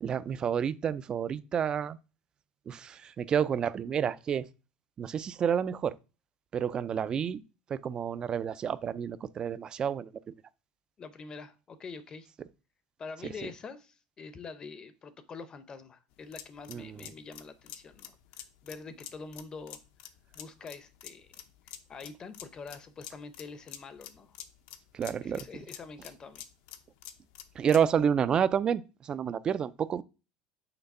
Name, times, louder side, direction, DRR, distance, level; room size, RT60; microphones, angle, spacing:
voice 1, 0.0-2.0 2.7-4.5 5.0-6.0 6.5-7.4 7.7-10.1 16.7-17.1 24.9-25.5 27.6-30.0, right 8 dB, 30° right, 0.4 m, -29 dB
voice 2, 11.0-12.3 13.0-18.1 18.6-19.8 20.3-24.4 25.2-26.5, left 4 dB, 30° left, 0.7 m, -45 dB
sound 1, 16.1-27.9, left 11 dB, 75° left, 0.8 m, -48 dB
5.9 x 3.3 x 5.4 m
supercardioid pair, 130°, 3 cm